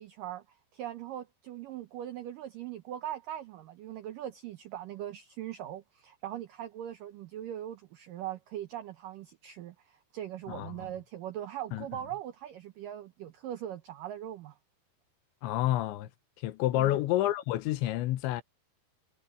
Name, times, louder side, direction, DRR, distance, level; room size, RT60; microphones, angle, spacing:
voice 1, 0.0-14.6 16.7-17.0, right 11 dB, 85° right, 1.9 m, -40 dB
voice 2, 15.4-16.1 16.4-18.4, left 14 dB, 85° left, 3.3 m, -29 dB
omnidirectional pair, 5.2 m